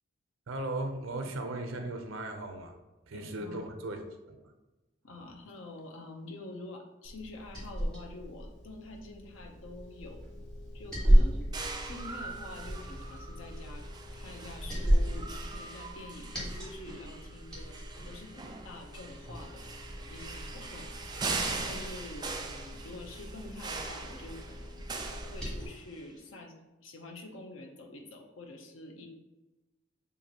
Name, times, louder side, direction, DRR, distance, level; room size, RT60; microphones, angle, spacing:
voice 1, 0.5-2.7 3.1-4.5, right 2 dB, 85° right, 5 dB, 0.6 m, -37 dB
voice 2, 3.1-3.7 5.0-10.2 10.7-11.5 11.8-13.9 14.1-17.8 18.1-19.7 20.1-21.1 21.4-24.8 25.3-26.5 26.8-29.1, left 2 dB, 80° left, 3 dB, 0.8 m, -47 dB
Liquid, 7.0-25.7, equal, 5° left, 1.5 m, -33 dB
sound 1, 11.5-26.0, right 4 dB, 20° right, 0.4 m, -41 dB
6.9 x 2.6 x 2.9 m, 1.1 s
head